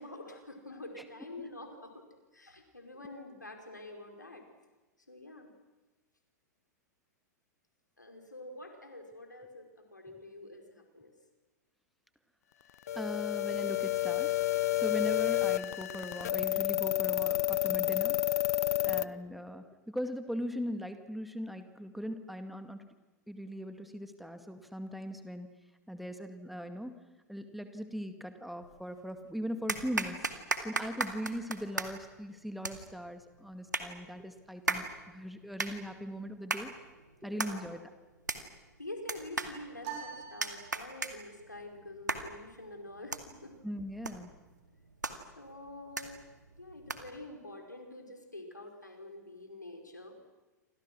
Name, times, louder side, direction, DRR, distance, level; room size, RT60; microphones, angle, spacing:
voice 1, 0.0-2.0 2.3-4.4 5.1-5.5 8.0-11.1 18.7-19.0 37.2-37.8 38.8-43.5 45.4-46.2 46.6-50.2, left 2 dB, 90° left, 4 dB, 4.9 m, -47 dB
sound 1, 12.9-19.0, left 16 dB, 60° left, 0.9 m, -30 dB
voice 2, 12.9-14.4 14.7-18.2 18.8-22.9 23.3-25.5 25.9-26.9 27.3-30.3 30.6-36.7 37.2-37.8 43.6-44.3, equal, ahead, 8 dB, 2.1 m, -40 dB
sound 2, 28.6-29.2 29.7-47.3, right 3 dB, 85° right, 2.2 m, -39 dB
sound 3, 39.8-41.3, right 8 dB, 50° right, 7.4 m, -44 dB
29.0 x 26.0 x 6.3 m, 1.2 s
figure-of-eight pair, 95°, 9 cm